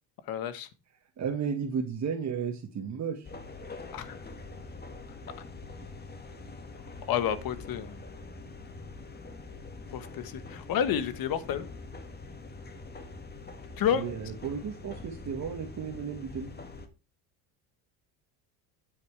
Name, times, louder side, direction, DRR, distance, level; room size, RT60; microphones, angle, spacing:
voice 1, 0.3-0.7 3.9-4.2 7.1-8.0 9.9-11.7 13.8-14.1, left 9 dB, 55° left, 13 dB, 1.4 m, -30 dB
voice 2, 1.2-3.3 13.9-16.5, right 6 dB, 40° right, 3 dB, 1.7 m, -33 dB
sound 1, 3.2-16.9, left 3 dB, 25° left, 1.8 m, -44 dB
9.6 x 8.5 x 3.3 m, 0.31 s
supercardioid pair, 105°, 42 cm